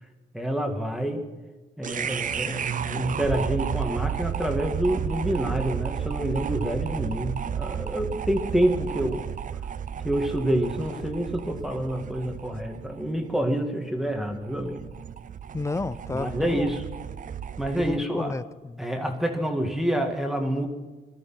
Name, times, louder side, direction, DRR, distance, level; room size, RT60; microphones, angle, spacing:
voice 1, 0.3-1.2 1.8-9.3 10.0-14.8 16.1-16.8 17.6-18.3 18.8-20.7, right 1 dB, ahead, 1.9 m, -27 dB
sound 1, 1.8-18.0, right 8 dB, 40° right, 0.6 m, -33 dB
voice 2, 15.5-16.7 17.8-18.8, left 3 dB, 15° left, 0.5 m, -31 dB
19.5 x 12.5 x 5.8 m
cardioid pair, 90°, 20 cm